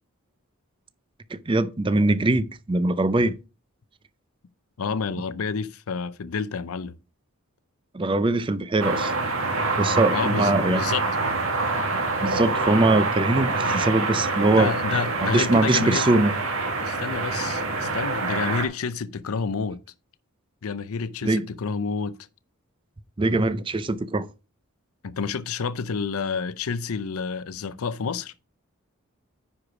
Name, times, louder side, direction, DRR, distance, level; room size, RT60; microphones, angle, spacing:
voice 1, 1.5-3.3 7.9-9.1 9.8-10.8 12.2-16.3 21.2-21.4 23.2-24.3, right 2 dB, 25° right, 0.4 m, -22 dB
voice 2, 4.8-6.9 10.1-11.1 14.5-16.1 16.8-19.8 20.6-22.2 25.0-28.3, left 5 dB, 75° left, 0.5 m, -29 dB
sound 1, 8.8-18.7, right 3 dB, 65° right, 2.0 m, -26 dB
9.9 x 4.7 x 4.8 m
head